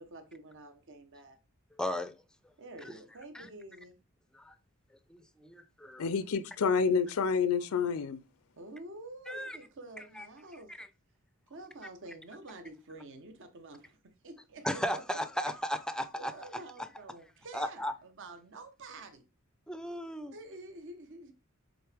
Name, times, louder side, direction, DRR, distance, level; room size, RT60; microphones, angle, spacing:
voice 1, 0.0-1.4 2.6-4.0 7.1-7.2 7.6-7.8 8.6-10.7 11.5-14.0 14.2-15.5 16.1-19.2 20.3-21.3, right 2 dB, 60° right, 1.0 m, -48 dB
voice 2, 1.8-2.1 3.3-3.5 4.3-4.5 5.1-6.0 9.3-9.6 10.2-10.3 10.8-10.9 14.6-16.3 17.5-17.9 19.7-20.3, equal, 5° left, 0.5 m, -35 dB
voice 3, 6.0-8.2, left 5 dB, 75° left, 0.5 m, -28 dB
7.8 x 3.7 x 3.4 m
head